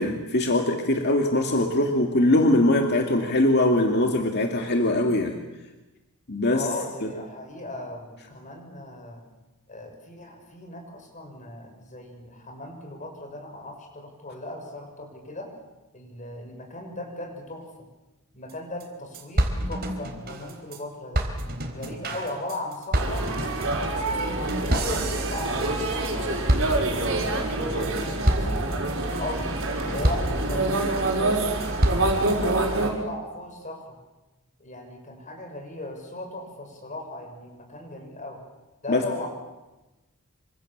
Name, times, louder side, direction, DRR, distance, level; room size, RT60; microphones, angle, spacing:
voice 1, 0.0-5.4 6.3-6.6 38.9-39.3, left 1 dB, 50° left, 3 dB, 2.3 m, -22 dB
voice 2, 6.5-9.2 9.7-15.5 15.9-17.7 18.3-21.3 21.7-23.3 24.0-27.2 27.6-29.5 29.9-31.8 32.2-34.0 34.6-38.4 38.8-39.3, left 2 dB, 35° left, 3 dB, 6.6 m, -38 dB
sound 1, 18.5-18.6 18.8-18.9 19.1-20.8 21.1-26.2 26.5-27.2 27.6-27.9 28.3-28.8 29.2-29.7 30.0-31.0 31.4-32.4, right 1 dB, 45° right, 4.2 m, -28 dB
sound 2, 22.9-32.9, right 2 dB, 65° right, 5.7 m, -26 dB
27.5 x 26.0 x 7.4 m, 1.1 s
head